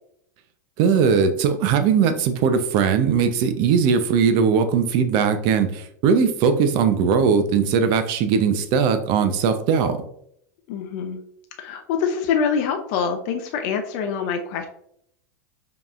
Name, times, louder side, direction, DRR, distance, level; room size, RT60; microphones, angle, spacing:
voice 1, 0.8-10.0, right 6 dB, 50° right, 9 dB, 0.6 m, -19 dB
voice 2, 10.7-11.2 11.6-14.7, left 6 dB, 55° left, 5 dB, 0.5 m, -25 dB
5.1 x 3.0 x 2.5 m, 0.70 s
hypercardioid pair, 120°, 10 cm